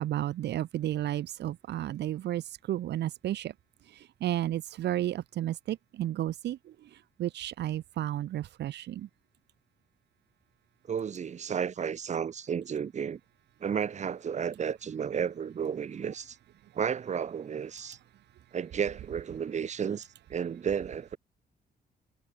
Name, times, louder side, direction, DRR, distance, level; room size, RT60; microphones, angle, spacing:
voice 1, 0.0-3.5 3.9-6.6 7.2-9.1, right 12 dB, 80° right, 1.9 m, -32 dB
voice 2, 10.9-13.2 13.6-16.4 16.8-18.0 18.5-21.2, right 7 dB, 45° right, 3.5 m, -32 dB
cardioid pair, 150°, 17 cm